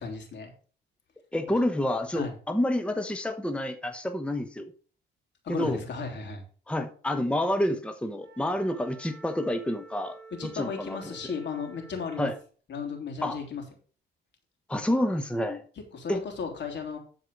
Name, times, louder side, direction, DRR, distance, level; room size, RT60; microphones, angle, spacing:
voice 1, 0.0-0.5 2.1-2.3 5.4-6.4 10.3-12.3 12.7-13.6 15.9-17.0, left 5 dB, 60° left, 3 dB, 3.2 m, -35 dB
voice 2, 1.3-4.7 5.5-5.8 6.7-11.1 12.2-12.3 13.2-13.4 14.7-15.6 16.1-16.2, left 1 dB, 5° left, 7 dB, 1.0 m, -29 dB
Wind instrument woodwind instrument, 8.2-12.5, right 4 dB, 55° right, 2.4 m, -50 dB
12.5 x 4.8 x 5.4 m, 0.41 s
cardioid pair, 90°, 20 cm